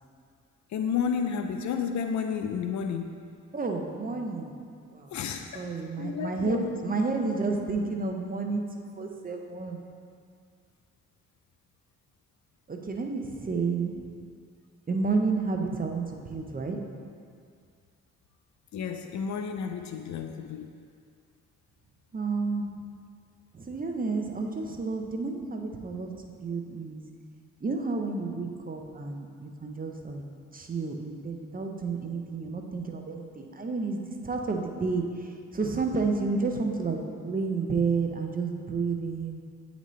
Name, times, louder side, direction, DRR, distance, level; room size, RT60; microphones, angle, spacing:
voice 1, 0.7-3.2 5.1-5.6 6.0-6.8 18.7-20.7, left 6 dB, 70° left, 6 dB, 0.4 m, -31 dB
voice 2, 3.5-4.5 4.9-5.1 5.5-9.8 12.7-14.0 14.9-16.8 22.1-22.7 23.5-27.0 27.6-30.2 30.5-39.4, right 4 dB, 30° right, 3 dB, 0.7 m, -31 dB
8.8 x 4.1 x 3.1 m, 2.2 s
cardioid pair, 70°, 30 cm